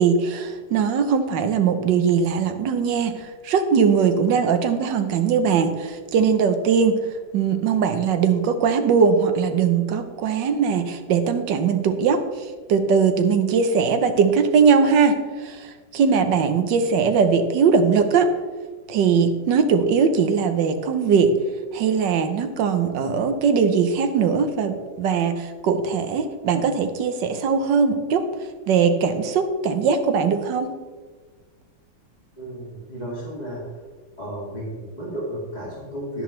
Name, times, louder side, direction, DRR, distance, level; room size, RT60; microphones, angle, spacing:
voice 1, 0.0-7.0 7.3-18.3 18.9-21.4 21.7-30.7, right 6 dB, 75° right, 8 dB, 1.5 m, -20 dB
voice 2, 32.4-33.6 34.2-36.2, right 1 dB, 20° left, -7 dB, 2.6 m, -33 dB
11.0 x 10.0 x 3.2 m, 1.4 s
omnidirectional pair, 2.0 m